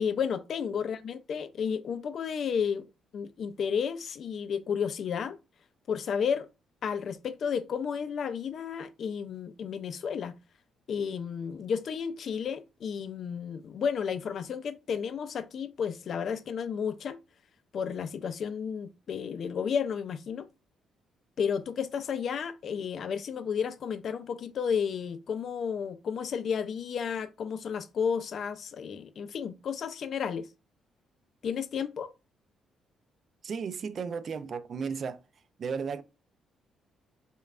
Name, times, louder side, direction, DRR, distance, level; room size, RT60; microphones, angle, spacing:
voice 1, 0.0-2.9 3.1-5.4 5.9-6.5 6.8-10.4 10.9-17.2 17.7-20.5 21.4-30.5 31.4-32.1, left 7 dB, 60° left, 0.4 m, -32 dB
voice 2, 33.4-35.2 35.6-36.0, right 6 dB, 50° right, 0.4 m, -34 dB
5.2 x 2.3 x 2.4 m
cardioid pair, 90°, 0 cm